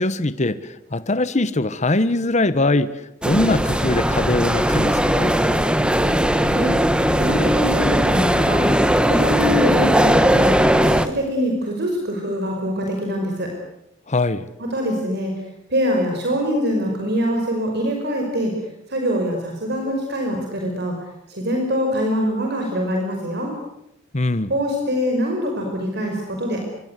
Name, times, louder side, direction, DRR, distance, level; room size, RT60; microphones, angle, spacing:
voice 1, 0.0-2.9 3.2-5.3 14.1-14.5 24.1-24.5, left 2 dB, 35° left, 14 dB, 1.1 m, -21 dB
sound 1, 3.2-11.1, equal, 5° right, 1.4 m, -18 dB
voice 2, 6.4-6.7 7.2-8.7 9.0-13.5 14.6-15.3 15.7-18.5 18.9-21.0 21.3-23.5 24.5-26.6, equal, 60° right, 2 dB, 5.3 m, -24 dB
26.0 x 23.5 x 8.2 m, 0.84 s
head